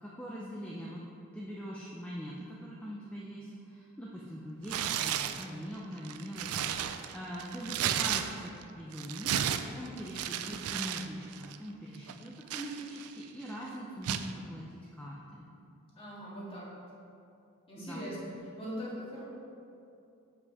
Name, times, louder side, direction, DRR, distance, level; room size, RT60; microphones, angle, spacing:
voice 1, 0.0-1.0 1.3-15.4 17.8-18.0, equal, 5° left, -5 dB, 0.5 m, -42 dB
Tearing, 4.6-5.5 6.0-8.6 8.9-11.1 11.3-11.6 12.1-13.2 14.0-14.3, right 10 dB, 85° right, 0.4 m, -33 dB
voice 2, 16.0-16.8 17.7-18.2 18.6-19.2, equal, 25° left, -7 dB, 1.9 m, -41 dB
7.5 x 5.5 x 4.7 m, 2.6 s
head